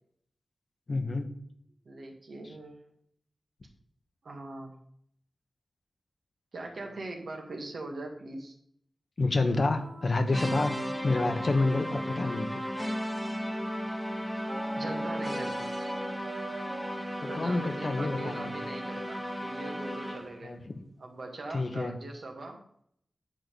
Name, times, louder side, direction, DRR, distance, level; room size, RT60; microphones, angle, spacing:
voice 1, 0.9-1.3 9.2-10.7 11.0-12.6 17.2-18.5 20.4-20.7 21.5-21.9, left 3 dB, 45° left, 6 dB, 1.1 m, -28 dB
voice 2, 1.9-2.8 4.2-4.7 6.5-8.5 14.7-15.7 17.3-20.6 21.0-22.6, right 2 dB, 65° right, 1 dB, 2.0 m, -41 dB
sound 1, 9.5-13.7 14.5-19.2, right 1 dB, 25° right, 1.1 m, -44 dB
sound 2, 10.3-20.4, equal, ahead, 1.1 m, -35 dB
10.5 x 3.9 x 6.9 m, 0.68 s
wide cardioid pair, 110°, 0 cm